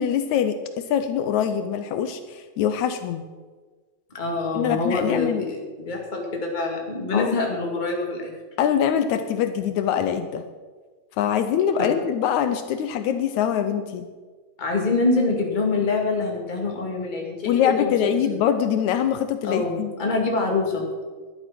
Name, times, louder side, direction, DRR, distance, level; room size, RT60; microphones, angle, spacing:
voice 1, 0.0-3.2 4.6-5.5 7.1-7.3 8.6-10.5 11.2-14.1 17.5-19.9, left 9 dB, 80° left, 9 dB, 2.0 m, -23 dB
voice 2, 4.1-8.3 11.8-11.9 14.6-17.9 18.3-18.4 19.4-20.9, left 3 dB, 15° left, 0 dB, 1.9 m, -25 dB
11.5 x 11.5 x 6.0 m, 1.4 s
omnidirectional pair, 3.4 m